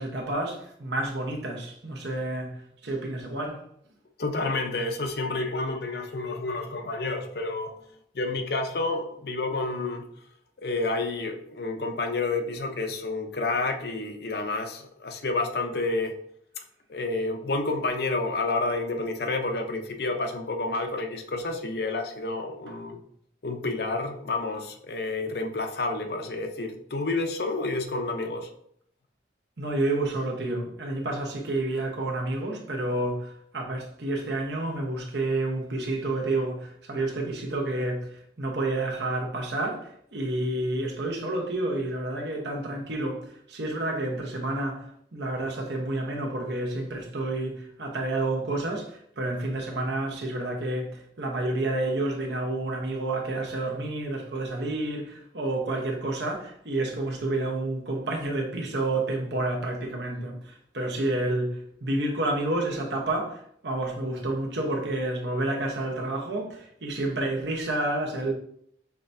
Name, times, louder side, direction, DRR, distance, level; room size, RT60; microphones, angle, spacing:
voice 1, 0.0-3.7 29.6-68.3, right 2 dB, 70° right, 1.0 m, -29 dB
voice 2, 4.2-7.8 8.1-10.1 10.6-16.2 16.9-23.0 23.4-28.5, left 3 dB, 60° left, 0.6 m, -29 dB
5.8 x 3.3 x 2.7 m
head